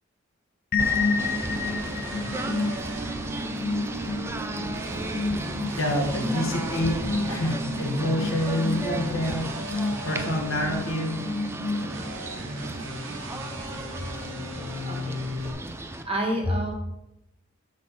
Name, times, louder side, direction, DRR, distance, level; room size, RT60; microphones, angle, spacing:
sound 1, 0.7-12.4, left 3 dB, 45° left, 0.5 m, -31 dB
Singing / Bird, 0.8-16.0, right 2 dB, 10° right, 0.4 m, -35 dB
sound 2, 1.2-15.5, equal, 70° right, 1.1 m, -37 dB
voice 1, 5.8-7.0 7.3-9.8 10.0-11.2, left 1 dB, 75° left, 1 dB, 1.3 m, -27 dB
voice 2, 14.4-15.2 16.0-16.7, equal, 30° right, 0 dB, 1.5 m, -29 dB
7.1 x 4.1 x 5.0 m, 0.91 s
head